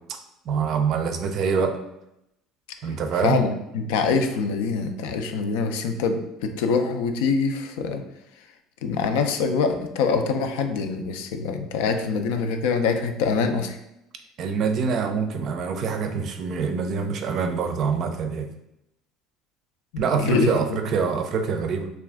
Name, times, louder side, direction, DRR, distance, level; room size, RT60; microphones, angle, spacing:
voice 1, 0.5-1.8 2.8-3.4 14.4-18.5 20.0-21.9, right 5 dB, 55° right, 6 dB, 0.4 m, -25 dB
voice 2, 3.2-8.0 8.8-13.8 19.9-20.8, left 5 dB, 80° left, 6 dB, 0.3 m, -24 dB
2.4 x 2.3 x 3.4 m, 0.83 s
hypercardioid pair, 80°, 0 cm